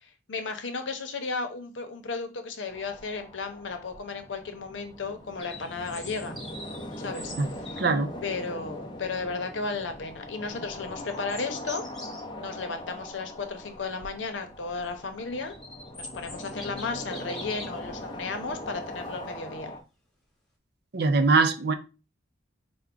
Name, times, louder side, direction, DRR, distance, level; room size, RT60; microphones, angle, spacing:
voice 1, 0.0-6.4 7.0-7.8 8.2-11.8 12.4-15.6 15.9-19.7, left 4 dB, 90° left, 0.7 m, -34 dB
sound 1, 2.7-19.8, left 1 dB, 25° left, 0.5 m, -41 dB
sound 2, 5.4-8.0 10.9-12.2 15.0-17.9, left 1 dB, ahead, 0.9 m, -44 dB
voice 2, 7.8-8.1 20.9-21.7, right 3 dB, 55° right, 0.5 m, -22 dB
4.5 x 2.1 x 3.7 m
head